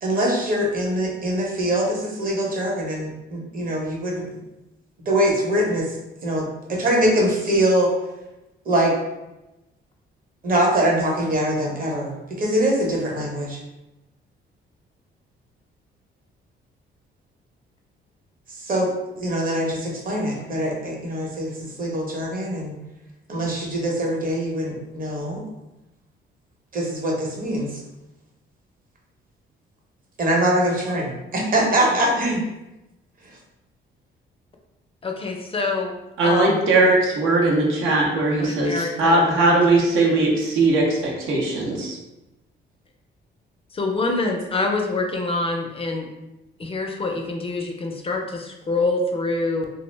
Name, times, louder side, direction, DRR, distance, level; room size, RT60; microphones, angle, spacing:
voice 1, 0.0-4.3 5.1-5.9 6.2-7.9 8.7-8.9 10.4-13.6 18.6-18.9 19.2-22.7 23.3-25.4 26.7-27.8 30.2-32.4, right 1 dB, 45° right, -1 dB, 0.8 m, -23 dB
voice 2, 35.0-35.9 36.2-36.6 38.4-39.5 43.7-46.1 46.6-49.7, left 2 dB, 30° left, 2 dB, 0.4 m, -26 dB
voice 3, 36.2-42.0, right 2 dB, 90° right, -2 dB, 0.7 m, -19 dB
2.4 x 2.0 x 3.1 m, 0.98 s
cardioid pair, 90°, 20 cm